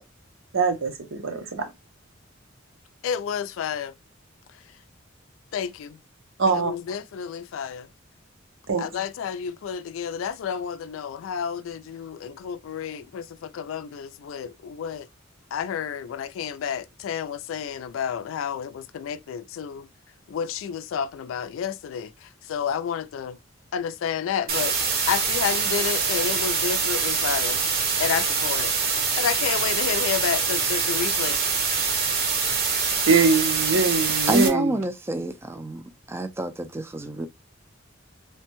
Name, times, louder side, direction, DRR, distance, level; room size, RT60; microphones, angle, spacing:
voice 1, 0.5-1.7 6.4-6.7 8.7-8.8 33.1-34.7, right 4 dB, 85° right, 0.8 m, -22 dB
voice 2, 3.0-3.9 5.5-6.0 6.5-7.9 8.8-15.1 15.5-19.9 20.3-23.4 23.7-24.8 25.1-28.7 29.2-31.4, left 7 dB, 85° left, 0.3 m, -30 dB
sound 1, 24.5-34.5, right 5 dB, 50° right, 0.8 m, -24 dB
voice 3, 34.3-35.8 36.1-37.3, right 1 dB, 15° right, 0.3 m, -27 dB
3.2 x 2.2 x 2.9 m
head